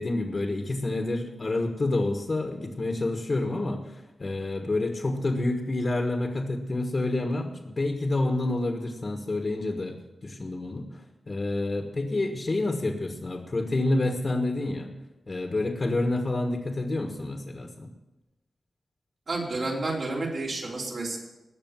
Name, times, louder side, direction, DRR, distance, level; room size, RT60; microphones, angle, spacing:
voice 1, 0.0-10.0 10.2-10.9 11.3-14.9 15.3-17.9, left 2 dB, 35° left, 4 dB, 1.4 m, -28 dB
voice 2, 19.3-21.2, right 2 dB, 60° right, -3 dB, 4.2 m, -30 dB
19.5 x 6.9 x 7.4 m, 1.0 s
wide cardioid pair, 150°, 0 cm